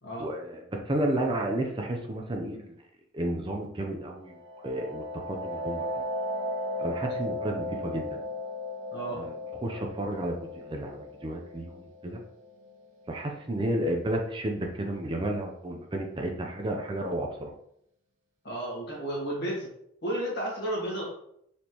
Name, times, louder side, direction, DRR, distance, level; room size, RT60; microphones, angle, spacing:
voice 1, 0.2-2.7 3.1-4.4 4.6-5.8 6.8-8.2 9.1-12.2 13.1-17.5, right 1 dB, 25° right, 2 dB, 0.5 m, -32 dB
sound 1, 4.3-13.7, left 1 dB, 80° right, 0.9 m, -36 dB
voice 2, 8.9-9.2 18.4-19.7 20.0-21.0, right 1 dB, 60° left, -4 dB, 1.7 m, -32 dB
4.2 x 3.3 x 2.9 m, 0.72 s
head